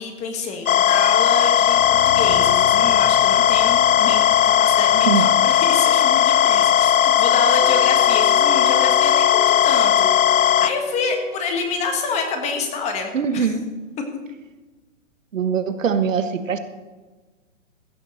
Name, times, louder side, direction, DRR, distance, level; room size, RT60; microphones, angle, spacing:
voice 1, 0.0-10.1 10.4-13.5, left 4 dB, 15° left, 4 dB, 1.4 m, -27 dB
sound 1, 0.7-10.7, left 9 dB, 85° left, 0.7 m, -17 dB
sound 2, 1.4-7.4, left 1 dB, 60° left, 2.5 m, -39 dB
Wind instrument woodwind instrument, 7.6-12.0, right 1 dB, 10° right, 1.1 m, -36 dB
voice 2, 13.1-13.6 15.3-16.6, right 6 dB, 75° right, 10 dB, 1.3 m, -22 dB
15.5 x 6.9 x 6.6 m, 1.3 s
hypercardioid pair, 145°, 39 cm